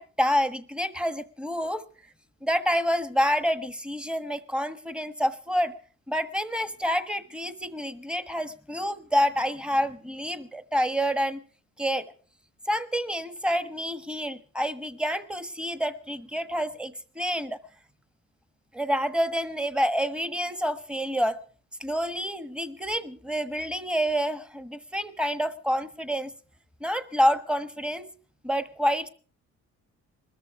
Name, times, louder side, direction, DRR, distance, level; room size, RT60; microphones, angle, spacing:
voice 1, 0.0-1.8 2.4-5.7 6.1-11.4 11.8-12.0 12.7-17.6 18.7-21.4 21.8-26.3 26.8-28.1 28.4-29.1, equal, 5° right, 12 dB, 1.3 m, -28 dB
21.0 x 14.0 x 4.8 m, 0.41 s
cardioid pair, 90°, 30 cm